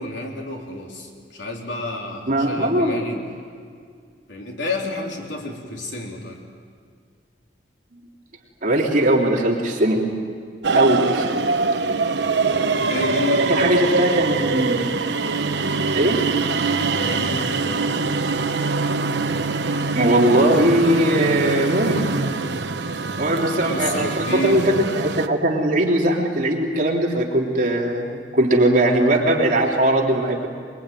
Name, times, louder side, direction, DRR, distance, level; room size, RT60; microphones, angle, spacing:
voice 1, 0.0-3.2 4.3-6.4 12.8-14.2 16.9-18.1 23.7-24.6, left 2 dB, 90° left, 0 dB, 3.9 m, -30 dB
voice 2, 2.3-3.1 8.6-10.0 10.7-11.3 13.4-14.8 15.9-16.3 19.9-22.1 23.2-30.5, right 1 dB, 50° right, -1 dB, 3.2 m, -20 dB
sound 1, 10.6-25.3, right 3 dB, 75° right, 1.1 m, -23 dB
23.5 x 23.0 x 9.2 m, 2.1 s
head